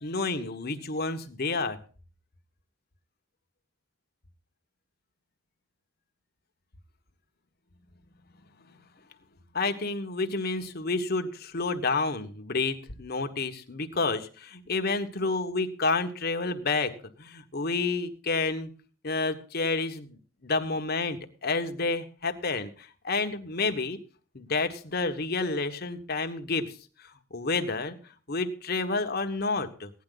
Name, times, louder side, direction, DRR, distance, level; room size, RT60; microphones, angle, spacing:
voice 1, 0.0-1.8 9.5-18.7 19.0-24.0 24.3-26.7 27.3-28.0 28.3-29.9, left 3 dB, 55° left, 7 dB, 1.3 m, -29 dB
16.5 x 10.5 x 3.9 m, 0.39 s
head